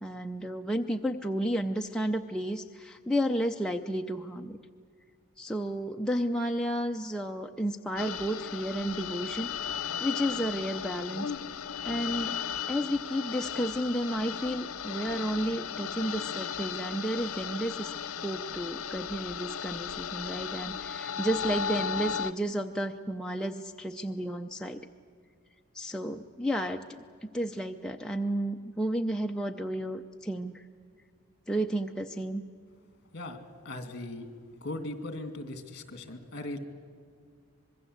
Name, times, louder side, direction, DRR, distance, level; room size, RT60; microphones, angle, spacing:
voice 1, 0.0-4.6 5.4-9.5 10.0-11.3 11.8-12.4 12.7-17.9 18.2-24.9 25.7-30.6 31.5-32.4, equal, 5° left, 2 dB, 0.6 m, -32 dB
sound 1, 8.0-22.3, left 7 dB, 80° left, 0.8 m, -36 dB
voice 2, 33.6-34.3 34.6-36.6, left 2 dB, 50° left, 8 dB, 2.3 m, -38 dB
25.5 x 21.5 x 8.1 m, 2.1 s
head